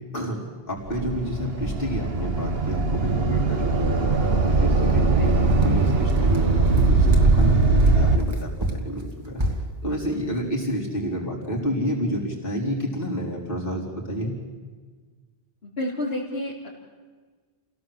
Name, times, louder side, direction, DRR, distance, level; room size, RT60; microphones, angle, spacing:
voice 1, 0.7-4.1 4.4-9.4 9.8-14.3, equal, 60° left, -3 dB, 4.6 m, -29 dB
sound 1, 0.9-8.2, right 3 dB, 70° right, 1.7 m, -20 dB
sound 2, 5.5-7.4 7.8-9.7, equal, 25° right, 1.9 m, -28 dB
voice 2, 15.6-16.7, left 1 dB, 75° left, -6 dB, 3.3 m, -30 dB
27.5 x 17.0 x 7.8 m, 1.5 s
omnidirectional pair, 1.0 m